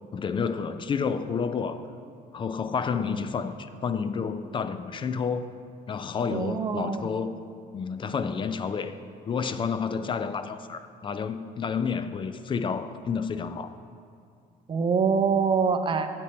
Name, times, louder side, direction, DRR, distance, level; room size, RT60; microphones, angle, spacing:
voice 1, 0.1-1.8 2.3-5.5 5.9-7.3 7.7-8.9 9.3-13.8, left 6 dB, 30° left, 11 dB, 0.4 m, -30 dB
voice 2, 6.3-7.1 14.7-16.1, right 5 dB, 30° right, 7 dB, 0.5 m, -24 dB
7.5 x 4.3 x 6.7 m, 2.3 s
cardioid pair, 110°, 17 cm